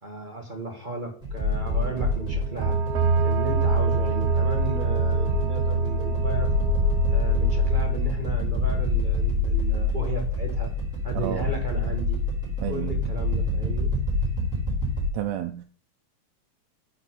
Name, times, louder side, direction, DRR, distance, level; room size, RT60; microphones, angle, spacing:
voice 1, 0.0-2.8 3.2-6.5 7.1-10.7 11.0-12.2 12.7-13.9, right 2 dB, 40° right, 2 dB, 0.7 m, -35 dB
sound 1, 1.2-15.1, left 2 dB, ahead, 4.1 m, -26 dB
sound 2, 1.6-7.9, right 5 dB, 65° right, 1.9 m, -26 dB
voice 2, 12.6-12.9 15.1-15.6, right 12 dB, 80° right, 7 dB, 1.8 m, -30 dB
9.1 x 5.4 x 4.1 m, 0.43 s
omnidirectional pair, 3.3 m